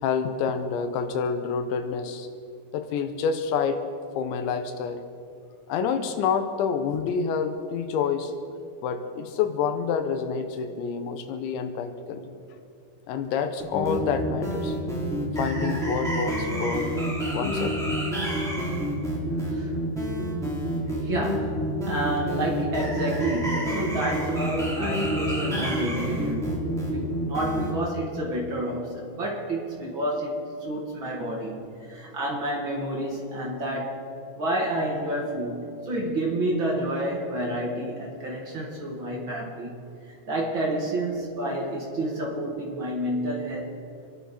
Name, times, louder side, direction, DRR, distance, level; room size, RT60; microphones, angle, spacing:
voice 1, 0.0-2.3 2.7-3.8 4.2-5.0 5.7-8.3 8.8-12.3 13.1-14.8 15.3-17.0 17.3-17.9, left 6 dB, 85° left, 8 dB, 3.3 m, -28 dB
sound 1, 13.6-27.7, equal, ahead, 2.0 m, -28 dB
voice 2, 21.0-34.0 34.4-39.7 40.3-43.8, right 1 dB, 50° right, -2 dB, 1.4 m, -29 dB
27.0 x 11.5 x 4.2 m, 2.5 s
omnidirectional pair, 5.1 m